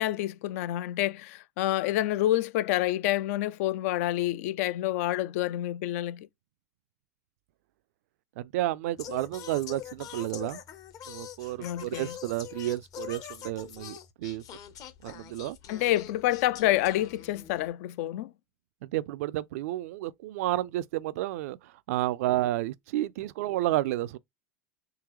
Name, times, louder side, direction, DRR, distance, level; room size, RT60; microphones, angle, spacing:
voice 1, 0.0-6.3 11.6-12.1 15.7-18.3, left 14 dB, 65° left, 0.4 m, -28 dB
voice 2, 8.4-10.6 11.1-14.4 15.0-15.6 18.8-21.6 21.9-24.2, right 15 dB, 70° right, 0.3 m, -31 dB
Singing, 9.0-17.7, left 10 dB, 45° left, 0.8 m, -44 dB
3.7 x 2.8 x 3.0 m
hypercardioid pair, 95°, 8 cm